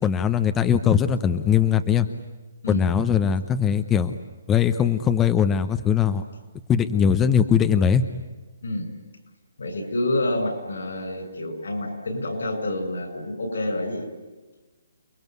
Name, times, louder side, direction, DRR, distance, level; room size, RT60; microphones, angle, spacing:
voice 1, 0.0-2.1 2.7-4.1 4.5-6.2 6.7-8.0, left 8 dB, 15° left, 10 dB, 0.8 m, -20 dB
voice 2, 9.6-14.1, left 1 dB, 80° left, 7 dB, 7.9 m, -28 dB
29.5 x 21.0 x 9.5 m, 1.2 s
hypercardioid pair, 155°, 0 cm